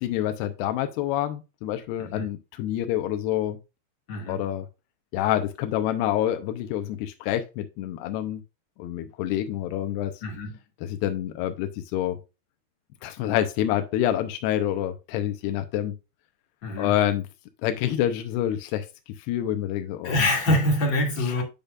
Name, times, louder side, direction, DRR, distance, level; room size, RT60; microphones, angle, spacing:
voice 1, 0.0-3.6 4.3-4.6 5.1-8.4 8.8-10.1 10.8-12.2 13.0-15.9 16.8-17.3 17.6-18.9 19.3-20.1, left 12 dB, 85° left, 2.8 m, -27 dB
voice 2, 4.1-4.4 10.2-10.6 16.6-17.0 20.0-21.4, left 1 dB, 35° left, 2.5 m, -25 dB
10.0 x 5.3 x 2.5 m
omnidirectional pair, 4.8 m